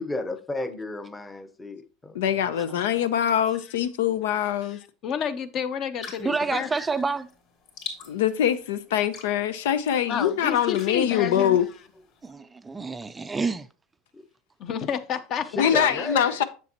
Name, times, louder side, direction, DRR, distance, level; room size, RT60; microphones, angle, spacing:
voice 1, 0.0-2.5 14.1-14.2 15.5-16.4, left 2 dB, 10° left, 0.8 m, -33 dB
voice 2, 2.1-4.8 8.1-11.7 15.5-16.4, left 9 dB, 85° left, 0.6 m, -23 dB
voice 3, 4.7-6.7 10.1-11.6 14.6-15.7, left 7 dB, 40° left, 0.8 m, -30 dB
sound 1, 6.0-12.3, left 4 dB, 60° left, 2.7 m, -45 dB
voice 4, 6.2-7.3 12.2-13.7, right 4 dB, 15° right, 0.4 m, -28 dB
7.4 x 6.9 x 2.9 m
supercardioid pair, 130°, 0 cm